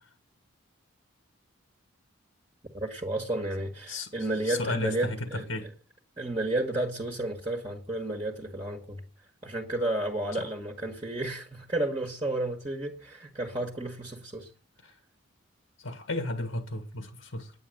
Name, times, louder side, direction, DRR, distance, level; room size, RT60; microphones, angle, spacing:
voice 1, 2.7-5.5 6.2-9.0 9.4-14.5, right 1 dB, 25° right, 1.6 m, -32 dB
voice 2, 4.4-5.7 10.4-10.5 14.8-14.9 15.8-17.5, left 2 dB, 75° left, 1.6 m, -33 dB
10.0 x 9.4 x 7.8 m
head